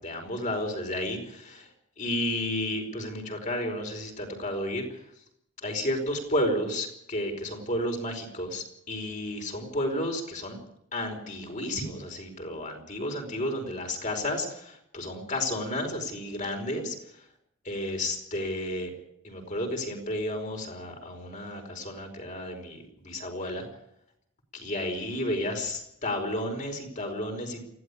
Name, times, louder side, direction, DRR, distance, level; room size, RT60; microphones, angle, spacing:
voice 1, 0.0-1.7 2.0-4.8 5.6-10.6 10.9-16.9 17.6-18.9 19.2-23.7 24.5-27.6, left 1 dB, 35° left, 3 dB, 4.8 m, -32 dB
20.0 x 15.5 x 8.5 m, 0.77 s
head